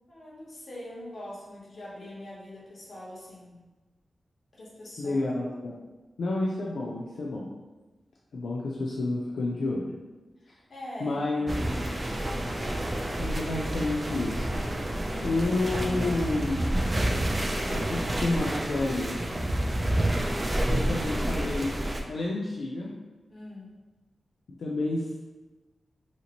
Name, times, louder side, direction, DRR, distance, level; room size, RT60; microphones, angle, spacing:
voice 1, 0.1-3.5 4.5-5.2 10.4-11.6 15.0-15.5 23.3-23.7, left 1 dB, 55° left, -6 dB, 1.0 m, -43 dB
voice 2, 5.0-5.7 6.2-7.5 8.3-9.9 11.0-11.6 13.2-14.5 15.2-16.6 17.7-19.1 20.7-21.7 22.1-22.9 24.6-25.0, left 2 dB, 90° left, -3 dB, 0.4 m, -29 dB
sound 1, 11.5-22.0, right 1 dB, 25° right, 0.3 m, -29 dB
2.8 x 2.8 x 2.9 m, 1.2 s
wide cardioid pair, 155°, 0 cm